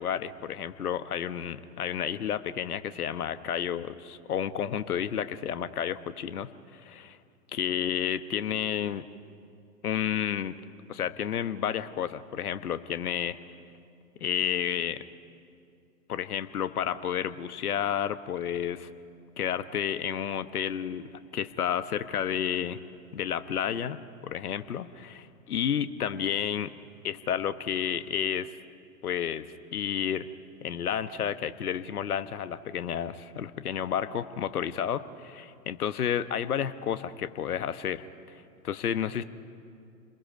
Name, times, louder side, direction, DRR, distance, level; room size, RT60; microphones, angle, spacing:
voice 1, 0.0-7.2 7.5-9.1 9.8-10.6 10.9-13.4 14.2-15.0 16.1-18.9 19.4-22.8 23.1-26.7 27.0-28.5 29.0-29.5 29.7-30.3 30.6-38.1 38.6-39.2, left 9 dB, 70° left, 12 dB, 1.2 m, -31 dB
29.5 x 21.5 x 5.3 m, 2.4 s
hypercardioid pair, 125°, 46 cm